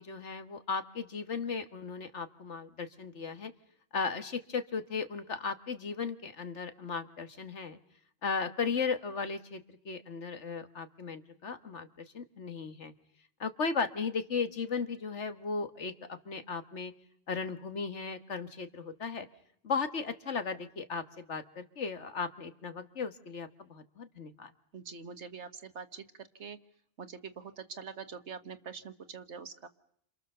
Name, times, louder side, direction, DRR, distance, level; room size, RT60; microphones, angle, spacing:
voice 1, 0.0-3.5 3.9-7.8 8.2-12.9 13.4-16.9 17.3-19.3 19.6-24.5, left 5 dB, 80° left, 9 dB, 1.9 m, -36 dB
voice 2, 24.7-26.6 27.0-29.7, right 6 dB, 75° right, 10 dB, 1.7 m, -44 dB
28.5 x 27.5 x 6.9 m, 0.67 s
omnidirectional pair, 1.2 m